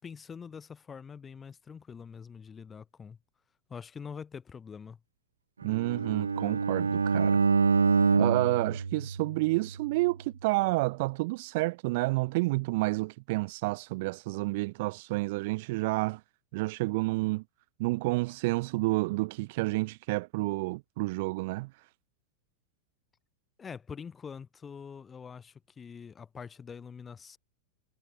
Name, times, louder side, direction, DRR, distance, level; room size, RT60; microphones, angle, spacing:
voice 1, 0.0-3.2 3.7-5.0 23.6-27.4, left 6 dB, 20° left, 5.9 m, -44 dB
voice 2, 5.6-7.4 8.1-16.2 16.5-17.4 17.8-21.7, right 23 dB, 50° right, 0.8 m, -30 dB
Bowed string instrument, 5.6-9.8, right 5 dB, 75° right, 1.4 m, -26 dB
figure-of-eight pair, 90°, 0 cm